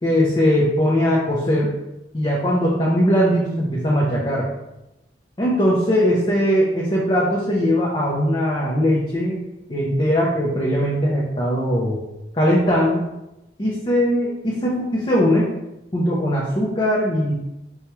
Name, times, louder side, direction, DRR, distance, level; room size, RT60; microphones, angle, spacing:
voice 1, 0.0-1.7 2.1-4.5 5.4-9.4 9.7-12.0 12.3-13.1 13.6-15.5 15.9-17.3, equal, 30° left, -5 dB, 0.7 m, -20 dB
6.2 x 2.4 x 3.1 m, 0.91 s
head